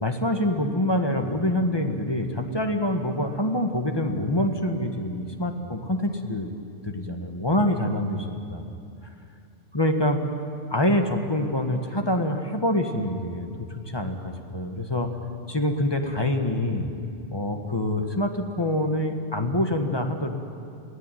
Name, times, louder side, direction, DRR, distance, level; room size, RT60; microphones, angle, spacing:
voice 1, 0.0-6.5 6.8-8.7 9.7-10.2 10.7-15.1 15.5-16.9 17.3-20.3, left 1 dB, 20° left, 4 dB, 1.5 m, -26 dB
23.0 x 16.5 x 9.2 m, 2.5 s
omnidirectional pair, 1.3 m